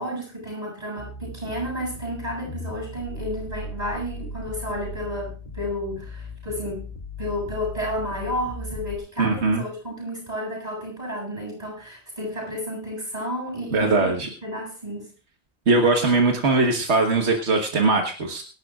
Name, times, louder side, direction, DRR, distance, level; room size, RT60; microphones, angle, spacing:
voice 1, 0.0-6.9 7.2-15.1, equal, 40° right, -2 dB, 7.8 m, -32 dB
sound 1, 1.0-9.0, left 1 dB, 50° left, 2.0 m, -37 dB
voice 2, 9.2-9.6 13.7-14.3 15.7-18.4, right 3 dB, 90° right, 2 dB, 1.7 m, -20 dB
24.0 x 12.0 x 2.5 m, 0.36 s
omnidirectional pair, 1.1 m